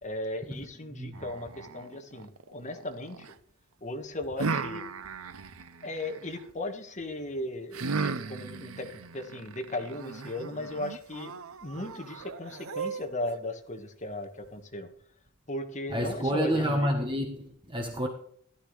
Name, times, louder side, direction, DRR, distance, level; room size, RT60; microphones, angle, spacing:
voice 1, 0.0-3.3 3.8-4.9 5.8-11.3 11.6-14.9 15.5-16.9, left 1 dB, 35° left, 1.6 m, -36 dB
voice 2, 0.9-1.2 15.9-18.1, equal, 20° right, 1.2 m, -29 dB
sound 1, 1.1-3.3 4.4-6.4 7.7-13.3, right 4 dB, 70° right, 0.7 m, -37 dB
16.0 x 11.5 x 3.3 m
head